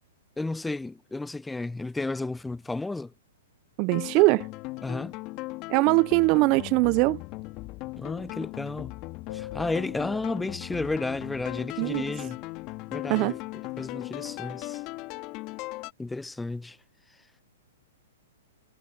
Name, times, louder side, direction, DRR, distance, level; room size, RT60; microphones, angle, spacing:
voice 1, 0.4-3.1 4.8-5.2 8.0-8.9 9.3-12.4 12.9-13.4 13.8-14.8 16.0-16.8, left 2 dB, 5° left, 0.9 m, -32 dB
voice 2, 3.8-4.5 5.7-7.2 11.8-12.0 13.1-13.3, right 26 dB, 40° right, 0.5 m, -21 dB
sound 1, 3.9-15.9, left 22 dB, 40° left, 2.9 m, -38 dB
sound 2, 9.3-11.5, left 12 dB, 55° left, 1.7 m, -45 dB
hypercardioid pair, 130°, 0 cm